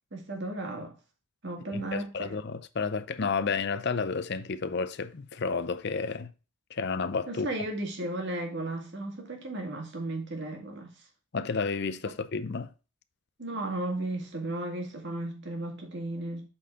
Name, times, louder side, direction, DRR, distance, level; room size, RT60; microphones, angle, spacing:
voice 1, 0.1-1.0 1.4-2.3 7.3-10.9 12.0-12.1 13.4-16.5, right 2 dB, 55° right, 2.1 m, -35 dB
voice 2, 1.7-6.3 6.7-7.5 11.3-12.7, left 4 dB, 50° left, 0.6 m, -31 dB
7.8 x 4.3 x 3.7 m
head